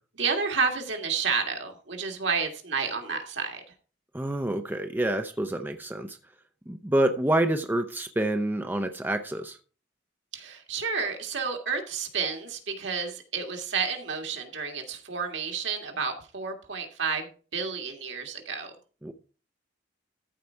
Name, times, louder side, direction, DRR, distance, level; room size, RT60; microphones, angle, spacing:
voice 1, 0.2-3.6 10.3-18.7, right 5 dB, 65° right, 3 dB, 1.9 m, -30 dB
voice 2, 4.1-6.2 6.7-9.6 19.0-19.1, right 1 dB, 10° right, 7 dB, 0.6 m, -27 dB
14.0 x 4.7 x 4.5 m, 0.38 s
head